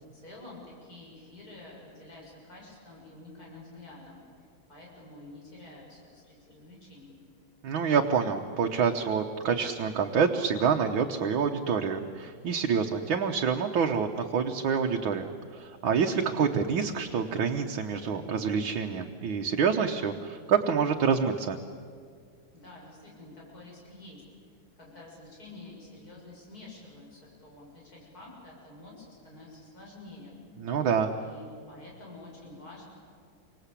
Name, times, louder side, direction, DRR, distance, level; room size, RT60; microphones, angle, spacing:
voice 1, 0.1-7.2 22.5-24.2 24.8-30.4 31.2-32.8, left 2 dB, 45° left, -3 dB, 7.3 m, -49 dB
voice 2, 7.6-21.6 30.6-31.1, right 6 dB, 75° right, 3 dB, 1.9 m, -27 dB
28.0 x 25.0 x 8.4 m, 2.2 s
omnidirectional pair, 2.2 m